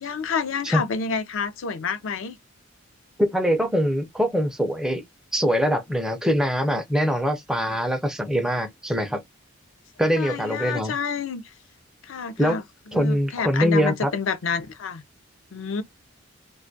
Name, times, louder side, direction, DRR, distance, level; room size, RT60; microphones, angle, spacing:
voice 1, 0.0-2.4 7.7-7.8 10.2-11.4 12.1-12.6 12.9-15.0 15.5-15.8, left 5 dB, 65° left, 0.4 m, -28 dB
voice 2, 3.2-5.0 5.3-9.2 10.0-11.0 12.4-12.6 12.9-14.1, equal, 5° right, 0.4 m, -23 dB
2.3 x 2.1 x 2.5 m
head